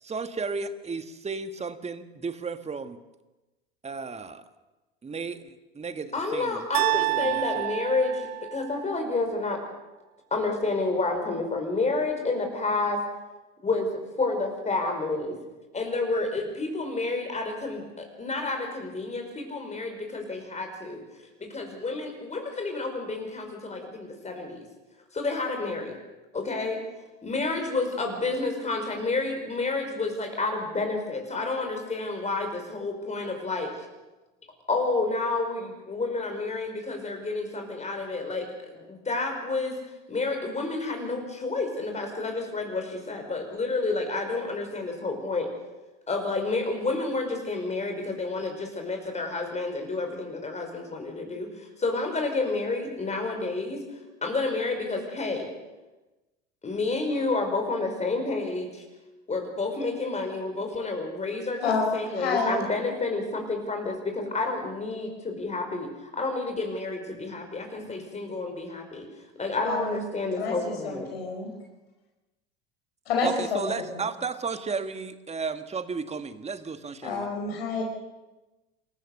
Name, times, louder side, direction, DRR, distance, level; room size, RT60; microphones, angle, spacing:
voice 1, 0.0-3.0 3.8-4.4 5.0-7.7 73.2-77.3, right 4 dB, 20° right, 10 dB, 1.6 m, -34 dB
voice 2, 6.1-9.6 10.3-13.0 13.6-15.3 15.7-21.0 21.4-24.6 25.1-26.0 26.3-26.8 27.2-33.7 34.7-39.7 40.1-45.5 46.1-53.8 54.2-55.5 56.6-58.8 59.3-69.0 69.4-71.1, left 3 dB, 20° left, 3 dB, 5.2 m, -30 dB
sound 1, 6.7-8.9, right 23 dB, 55° right, 0.8 m, -28 dB
voice 3, 62.2-62.6 69.6-70.0 70.4-71.5 73.1-73.7 77.0-77.8, left 4 dB, 80° left, 1 dB, 5.3 m, -28 dB
27.5 x 14.5 x 6.7 m, 1.1 s
hypercardioid pair, 80°, 30 cm